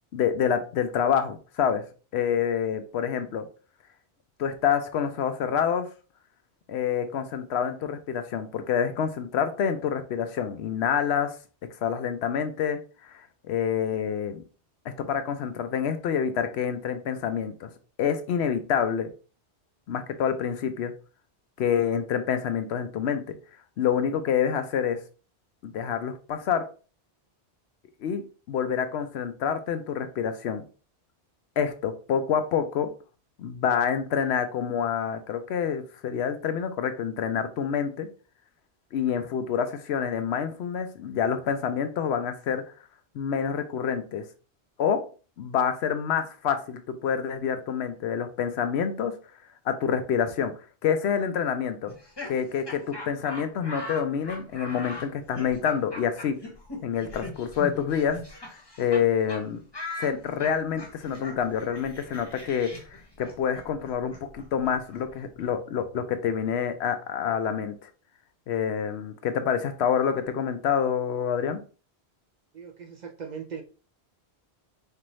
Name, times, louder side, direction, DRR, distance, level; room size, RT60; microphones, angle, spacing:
voice 1, 0.1-1.8 2.1-3.5 4.4-5.9 6.7-11.3 11.8-14.4 14.9-17.7 18.0-19.1 19.9-20.9 21.6-23.4 23.8-25.0 25.6-26.7 28.0-28.2 28.5-30.6 31.6-32.9 33.4-38.1 38.9-42.6 43.1-44.2 44.8-45.0 45.4-49.1 49.7-50.5 50.8-51.9 52.3-56.4 56.8-58.2 58.8-59.6 60.0-67.9 68.5-71.6, left 7 dB, 75° left, 9 dB, 0.8 m, -27 dB
Laughter, 51.9-59.0 59.3-59.4 59.7-65.5, left 2 dB, 25° left, 0.9 m, -40 dB
voice 2, 72.5-73.6, right 6 dB, 55° right, 3 dB, 0.6 m, -39 dB
4.5 x 2.5 x 3.0 m, 0.36 s
omnidirectional pair, 1.1 m